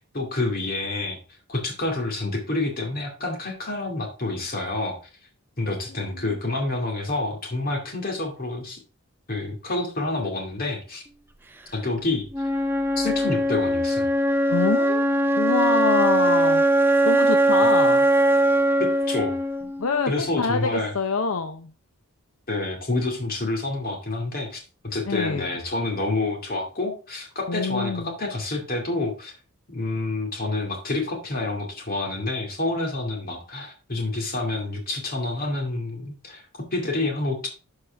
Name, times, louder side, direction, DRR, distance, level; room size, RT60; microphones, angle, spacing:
voice 1, 0.1-1.2 1.5-5.0 5.6-8.8 9.3-11.0 11.7-12.3 13.0-14.1 17.6-17.7 18.8-19.3 20.1-20.9 22.5-29.3 29.7-36.4 36.7-37.5, left 2 dB, 40° left, 2 dB, 2.2 m, -28 dB
voice 2, 6.0-6.4 14.5-15.1 15.4-16.6 17.0-18.1 19.8-21.7 25.1-25.5 27.5-28.2, left 4 dB, 70° left, 7 dB, 0.6 m, -26 dB
Wind instrument woodwind instrument, 12.3-20.3, right 1 dB, 10° right, 0.5 m, -21 dB
12.0 x 4.8 x 3.4 m, 0.36 s
head